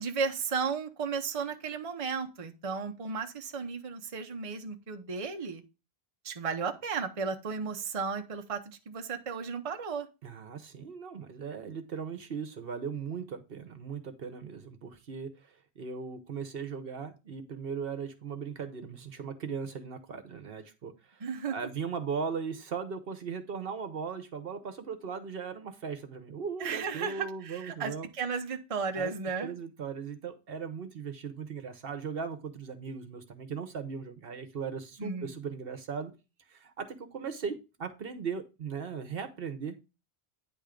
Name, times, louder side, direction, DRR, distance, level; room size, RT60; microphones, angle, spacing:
voice 1, 0.0-5.6 6.2-10.1 21.2-21.6 26.6-29.5 35.0-35.4, right 5 dB, 35° right, 6 dB, 0.8 m, -34 dB
voice 2, 10.2-28.1 29.0-29.1 29.4-36.1 36.5-39.8, right 6 dB, 65° right, 9 dB, 1.1 m, -38 dB
9.4 x 3.5 x 5.0 m, 0.29 s
omnidirectional pair, 1.1 m